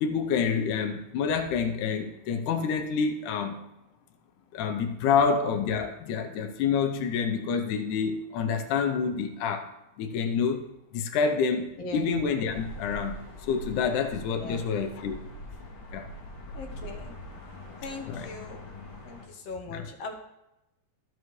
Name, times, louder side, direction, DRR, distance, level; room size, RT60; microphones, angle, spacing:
voice 1, 0.0-3.6 4.5-9.7 10.0-10.7 10.9-15.2 15.9-16.1 18.1-18.3 19.7-19.9, left 6 dB, 85° left, 6 dB, 2.3 m, -28 dB
voice 2, 11.8-12.1 14.4-14.7 16.5-17.1 17.8-18.6 19.0-20.1, left 3 dB, 65° left, 4 dB, 1.8 m, -39 dB
sound 1, 12.5-19.3, equal, 45° left, 2.4 m, -43 dB
14.5 x 5.8 x 3.1 m, 0.92 s
omnidirectional pair, 3.4 m